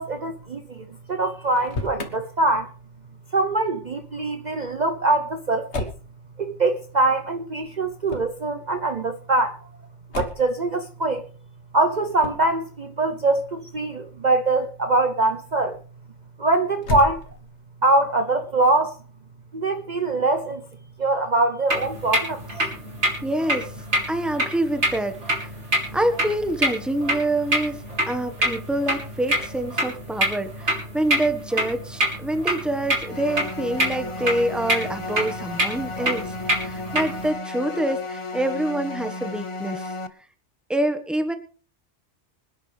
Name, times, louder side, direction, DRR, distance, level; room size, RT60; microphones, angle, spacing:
voice 1, 0.0-2.7 3.3-5.9 6.4-9.6 10.1-11.2 11.7-15.8 16.4-17.2 17.8-19.0 19.5-20.6 21.0-22.4, right 2 dB, 40° right, 0.9 m, -23 dB
Motor vehicle (road), 1.4-2.1 5.7-6.1 8.0-8.4 10.1-10.6 12.2-12.5 16.8-17.6, left 3 dB, 70° left, 1.7 m, -31 dB
sound 1, 21.7-37.3, right 1 dB, 75° right, 4.1 m, -27 dB
voice 2, 23.2-23.7 24.1-25.5 25.9-36.3 36.6-39.9 40.7-41.3, right 1 dB, ahead, 1.3 m, -26 dB
sound 2, 33.1-40.1, left 2 dB, 30° left, 0.8 m, -33 dB
25.5 x 10.0 x 3.4 m
omnidirectional pair, 1.2 m